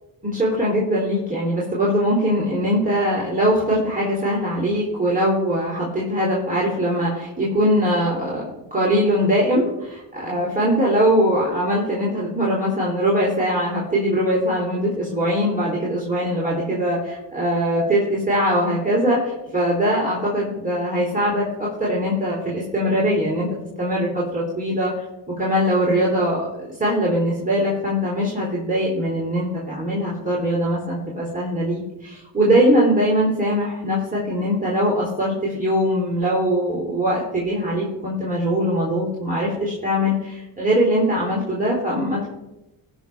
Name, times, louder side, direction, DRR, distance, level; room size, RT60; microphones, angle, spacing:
voice 1, 0.2-8.4 8.7-23.5 23.8-24.9 25.4-42.3, equal, 15° right, -6 dB, 3.5 m, -21 dB
17.0 x 6.2 x 3.5 m, 0.95 s
cardioid pair, 65°, 46 cm